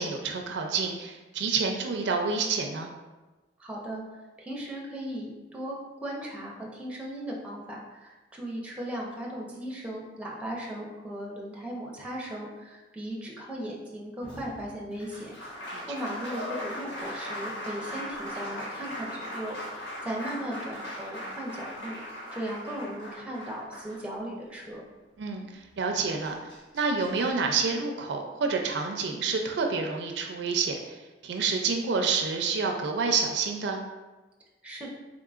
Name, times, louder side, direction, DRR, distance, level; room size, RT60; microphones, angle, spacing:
voice 1, 0.0-2.9 15.7-15.8 25.2-25.5 25.8-26.4 26.7-30.8 31.2-33.8, right 4 dB, 65° right, 3 dB, 0.4 m, -28 dB
voice 2, 3.6-4.0 4.4-5.8 6.0-15.4 15.9-22.0 22.3-24.8 34.6-34.9, right 1 dB, 5° right, -2 dB, 0.6 m, -37 dB
Applause, 14.2-24.5 25.9-26.0 26.2-27.2, equal, 75° left, 1.1 m, -39 dB
3.7 x 3.7 x 2.4 m, 1.2 s
head